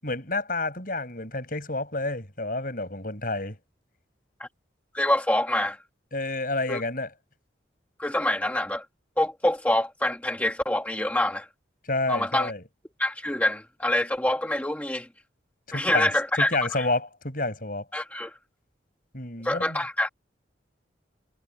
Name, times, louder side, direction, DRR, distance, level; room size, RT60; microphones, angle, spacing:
voice 1, 0.0-3.6 6.1-7.1 11.9-12.6 15.7-16.1 16.4-17.8 19.1-19.8, left 2 dB, 45° left, 7.7 m, -29 dB
voice 2, 4.9-5.8 6.7-6.8 8.0-8.8 9.2-11.5 12.1-12.5 13.0-15.1 15.7-16.9 17.9-18.4 19.4-20.1, left 1 dB, 10° left, 1.5 m, -26 dB
head